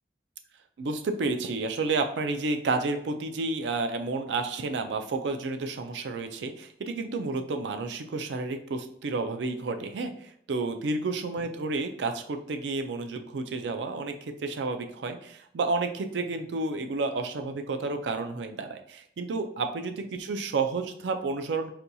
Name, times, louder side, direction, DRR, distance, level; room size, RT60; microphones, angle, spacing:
voice 1, 0.8-21.7, right 3 dB, 90° right, 6 dB, 0.4 m, -31 dB
4.2 x 2.3 x 2.6 m, 0.67 s
head